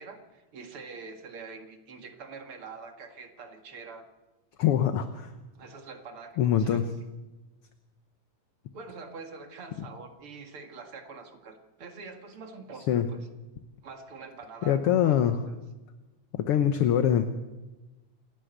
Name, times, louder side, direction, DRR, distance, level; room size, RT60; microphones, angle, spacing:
voice 1, 0.0-4.1 5.6-6.9 8.7-13.3 13.8-15.2 15.5-15.6, right 4 dB, 50° right, 5 dB, 2.7 m, -45 dB
voice 2, 4.6-5.3 6.4-6.8 12.9-13.1 14.6-15.4 16.3-17.3, left 10 dB, 65° left, 8 dB, 1.6 m, -23 dB
28.0 x 11.5 x 8.0 m, 1.1 s
omnidirectional pair, 3.4 m